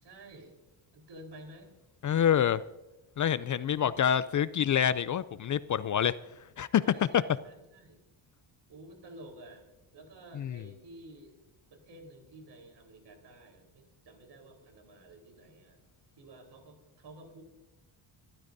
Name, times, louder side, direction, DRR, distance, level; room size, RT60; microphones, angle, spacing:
voice 1, 0.0-0.5 0.9-1.7 3.6-3.9 6.8-8.1 8.7-9.7 9.9-11.4 11.7-15.8 16.2-17.4, right 1 dB, 60° right, 3 dB, 4.2 m, -51 dB
voice 2, 2.0-2.6 3.2-6.1 6.6-6.8 10.4-10.6, left 9 dB, 45° left, 16 dB, 0.4 m, -27 dB
27.0 x 13.5 x 2.7 m, 1.0 s
cardioid pair, 105°, 47 cm